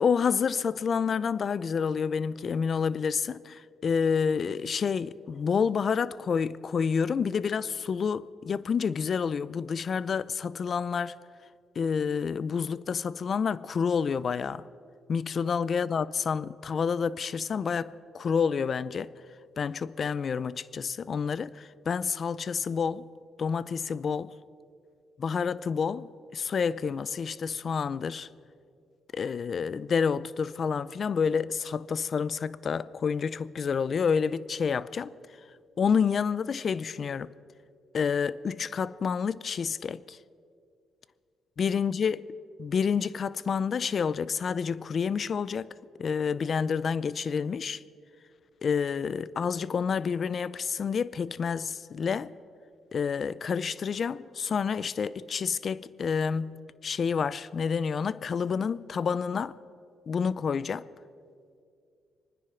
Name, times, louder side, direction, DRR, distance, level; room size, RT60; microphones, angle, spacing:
voice 1, 0.0-11.2 11.8-14.6 15.1-19.1 19.6-23.1 23.4-24.3 25.2-28.3 29.1-35.1 35.8-37.3 37.9-40.2 41.6-42.2 42.6-45.7 46.0-47.8 48.6-52.3 52.9-59.5 60.1-60.8, left 6 dB, 50° left, 0.5 m, -29 dB
25.5 x 9.9 x 5.7 m
cardioid pair, 90°, 0 cm